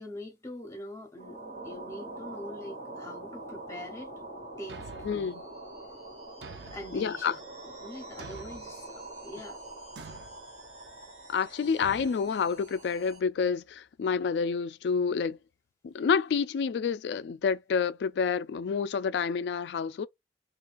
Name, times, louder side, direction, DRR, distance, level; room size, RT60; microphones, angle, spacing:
voice 1, 0.0-4.1 4.6-4.8 5.1-5.4 6.6-7.4 7.6-9.6 11.6-11.7, left 1 dB, 15° left, 0.9 m, -43 dB
sound 1, 1.2-13.2, right 2 dB, 40° right, 1.2 m, -44 dB
Thump thud, 4.7-5.3 6.4-7.0 8.2-8.7 10.0-10.4 11.8-12.1, right 4 dB, 75° right, 0.6 m, -46 dB
voice 2, 5.0-5.4 6.9-7.3 11.3-15.4 15.8-20.1, left 6 dB, 70° left, 0.3 m, -28 dB
3.8 x 2.3 x 2.5 m
head